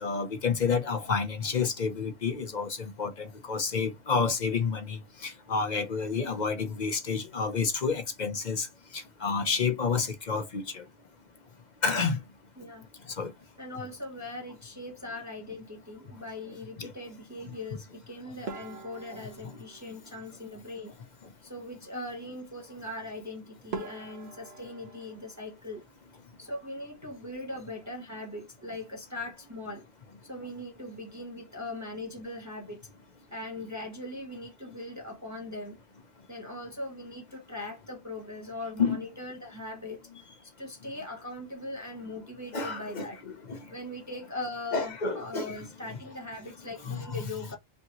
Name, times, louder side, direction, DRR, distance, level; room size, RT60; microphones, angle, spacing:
voice 1, 0.0-8.7 8.9-10.8 11.8-12.2 13.2-13.3 16.8-16.9 19.1-19.2 38.8-39.0 42.5-43.6 44.7-45.6 45.9-46.0 46.8-47.2, left 5 dB, 50° left, 0.8 m, -30 dB
voice 2, 12.6-12.9 13.6-20.9 21.4-25.8 26.4-29.9 30.2-32.9 33.3-35.8 36.3-40.0 40.6-43.2 43.7-47.6, left 2 dB, 15° right, 1.1 m, -40 dB
sound 1, 18.5-20.9 23.2-23.3 23.7-26.5 26.7-27.5 27.8-28.0 28.3-28.4 29.1-29.4, right 4 dB, 75° right, 1.2 m, -44 dB
5.3 x 2.8 x 2.9 m
omnidirectional pair, 1.1 m